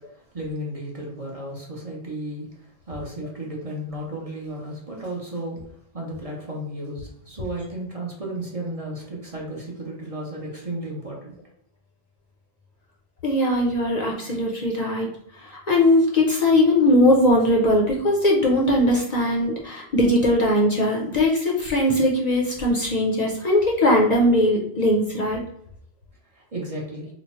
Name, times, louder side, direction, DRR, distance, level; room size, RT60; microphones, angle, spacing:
voice 1, 0.3-2.5 2.9-5.6 5.9-11.3 26.4-27.1, right 1 dB, 40° right, -2 dB, 0.7 m, -33 dB
voice 2, 13.2-15.1 15.5-25.4, left 1 dB, 50° left, -2 dB, 0.6 m, -20 dB
2.9 x 2.1 x 4.1 m, 0.72 s
omnidirectional pair, 1.1 m